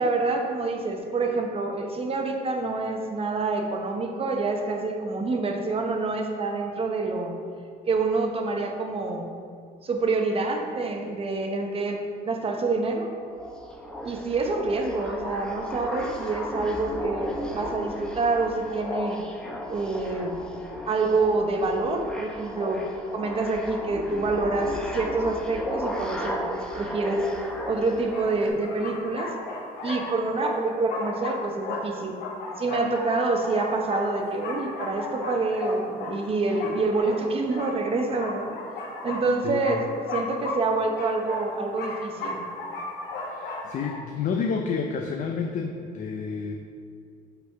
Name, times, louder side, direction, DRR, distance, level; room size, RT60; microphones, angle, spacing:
voice 1, 0.0-7.3 7.9-9.3 9.8-13.1 14.0-19.2 19.7-20.3 20.9-27.3 27.7-29.3 29.8-32.2 32.6-38.6 39.0-39.8 40.1-42.4, right 3 dB, 35° right, 3 dB, 0.8 m, -27 dB
sound 1, 13.2-28.5, equal, 5° left, 0.8 m, -35 dB
sound 2, 27.3-27.4 28.1-44.0, left 2 dB, 75° left, 1.2 m, -35 dB
voice 2, 43.3-46.6, left 5 dB, 50° left, 3 dB, 0.5 m, -30 dB
5.6 x 4.0 x 5.7 m, 2.2 s
cardioid pair, 110°, 17 cm